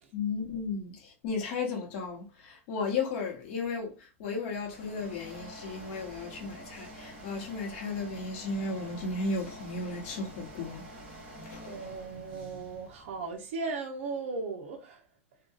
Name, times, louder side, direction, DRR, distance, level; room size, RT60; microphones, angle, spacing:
voice 1, 0.1-10.8 11.4-11.9, left 4 dB, 45° left, 0.9 m, -35 dB
sound 1, 4.3-13.5, equal, 15° right, 0.9 m, -47 dB
voice 2, 11.7-15.1, right 4 dB, 60° right, 0.6 m, -37 dB
2.7 x 2.2 x 2.3 m
supercardioid pair, 160°, 7 cm